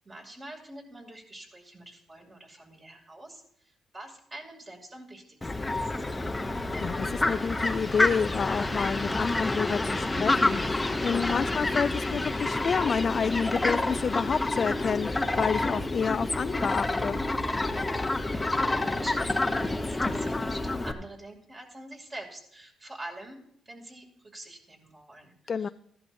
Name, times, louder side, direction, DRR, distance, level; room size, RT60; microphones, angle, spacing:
voice 1, 0.0-5.9 18.0-23.4 23.7-25.7, right 1 dB, 30° right, 0 dB, 2.7 m, -46 dB
Fowl, 5.4-20.9, left 2 dB, 15° left, 0.8 m, -28 dB
voice 2, 6.6-17.2 25.5-25.7, left 6 dB, 45° left, 14 dB, 0.3 m, -29 dB
15.0 x 11.5 x 2.7 m, 0.69 s
cardioid pair, 90°, 0 cm